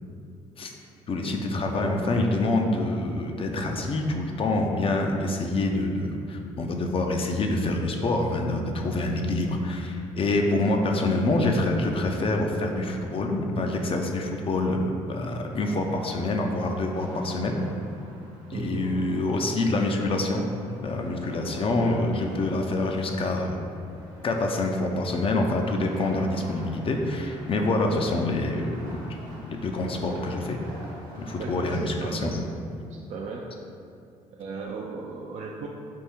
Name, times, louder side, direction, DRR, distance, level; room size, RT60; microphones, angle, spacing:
voice 1, 1.1-17.6 18.5-20.4 20.8-23.6 24.2-29.2 29.4-30.6 31.2-32.3, left 2 dB, 40° left, 2 dB, 0.5 m, -26 dB
sound 1, 15.5-31.7, equal, 75° right, 1.0 m, -47 dB
voice 2, 18.5-19.0 21.6-22.1 27.7-28.2 31.4-32.5 32.9-33.4 34.3-35.7, right 4 dB, 55° right, -1 dB, 0.4 m, -36 dB
3.5 x 2.6 x 4.3 m, 2.4 s
supercardioid pair, 65°, 14 cm